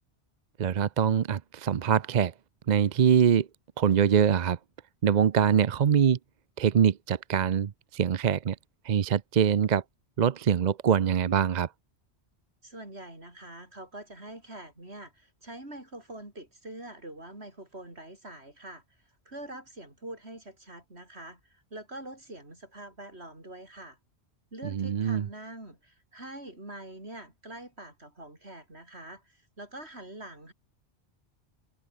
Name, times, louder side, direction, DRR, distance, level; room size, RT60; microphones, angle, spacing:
voice 1, 0.6-2.3 2.7-3.5 3.8-4.6 5.0-6.2 6.6-8.6 8.8-9.8 10.2-11.7 24.6-25.3, right 8 dB, 45° right, 0.7 m, -24 dB
voice 2, 12.6-18.8 19.3-24.0 24.5-30.5, right 1 dB, 70° right, 7.3 m, -44 dB
omnidirectional pair, 1.1 m